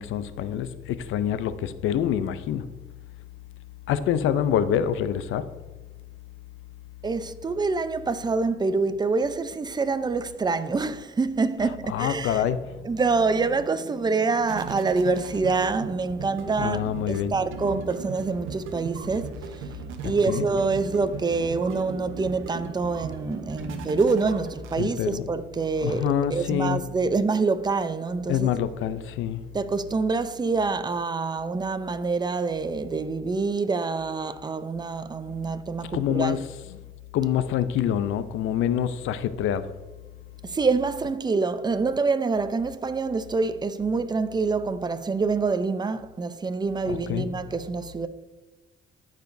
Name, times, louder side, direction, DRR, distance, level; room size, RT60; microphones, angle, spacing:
voice 1, 0.0-2.7 3.9-5.5 11.9-12.8 16.6-17.3 20.3-20.5 24.8-25.2 25.8-26.8 28.3-29.4 35.9-36.5 37.1-39.7 46.9-47.3, left 9 dB, 85° left, 0.6 m, -26 dB
voice 2, 7.0-12.4 12.8-19.3 20.0-28.5 29.5-36.4 40.4-48.1, right 4 dB, 20° right, 0.6 m, -26 dB
sound 1, 12.6-25.2, right 5 dB, 85° right, 1.0 m, -38 dB
13.5 x 4.9 x 2.7 m
cardioid pair, 90°, 20 cm